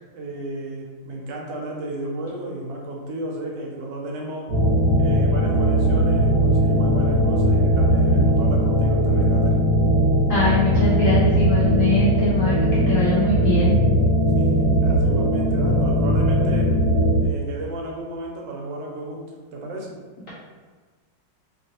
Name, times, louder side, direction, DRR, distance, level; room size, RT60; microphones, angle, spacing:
voice 1, 0.1-4.5 5.0-9.6 14.4-16.8 17.2-19.2 19.5-20.0, right 1 dB, 80° right, -1 dB, 1.2 m, -33 dB
sound 1, 4.5-17.3, equal, 65° right, 1.2 m, -19 dB
voice 2, 10.3-13.7, left 2 dB, 65° left, -8 dB, 0.8 m, -22 dB
3.0 x 2.6 x 2.7 m, 1.4 s
omnidirectional pair, 2.0 m